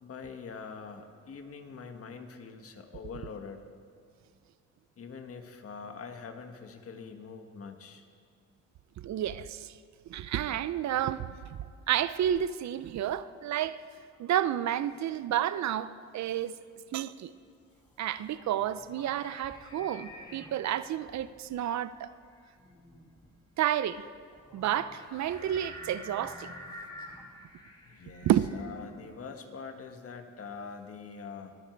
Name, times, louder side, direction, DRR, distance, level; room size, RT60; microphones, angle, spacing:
voice 1, 0.0-3.6 5.0-8.0 27.8-31.5, left 5 dB, 50° left, 1.6 m, -44 dB
voice 2, 9.0-9.7 10.1-11.3 11.9-13.8 14.2-16.5 16.9-17.3 18.0-22.1 23.6-24.0 24.5-26.5 28.2-28.5, right 11 dB, 65° right, 0.7 m, -30 dB
sound 1, 17.8-29.3, equal, 15° left, 3.0 m, -49 dB
22.0 x 13.0 x 4.6 m
cardioid pair, 90°, 30 cm